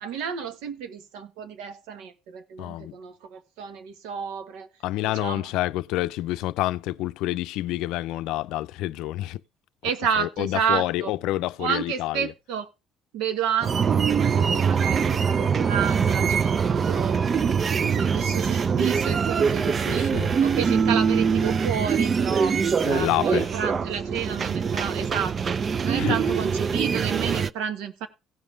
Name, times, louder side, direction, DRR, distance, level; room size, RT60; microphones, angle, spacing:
voice 1, 0.0-4.7 5.0-5.5 9.8-11.1 11.6-12.7 13.1-20.1 20.4-22.6 22.9-25.6 25.8-28.1, right 8 dB, 90° right, 1.4 m, -31 dB
voice 2, 2.6-2.9 4.8-9.4 10.2-12.3 19.9-20.3 22.8-23.5 25.9-26.2, left 16 dB, 80° left, 0.5 m, -28 dB
sound 1, 13.6-27.5, right 6 dB, 40° right, 0.5 m, -23 dB
16.0 x 5.5 x 4.6 m
cardioid pair, 100°, 0 cm